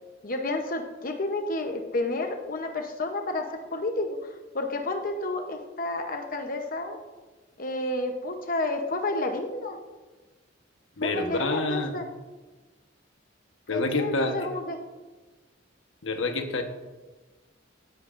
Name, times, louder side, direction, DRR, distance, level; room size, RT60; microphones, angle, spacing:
voice 1, 0.2-4.2 4.5-7.0 7.6-9.8 11.0-12.1 13.7-14.8, left 2 dB, 45° left, 4 dB, 0.9 m, -30 dB
voice 2, 11.0-11.9 13.7-14.5 16.0-16.6, left 2 dB, 85° left, 5 dB, 1.2 m, -27 dB
17.0 x 10.5 x 2.6 m, 1.3 s
head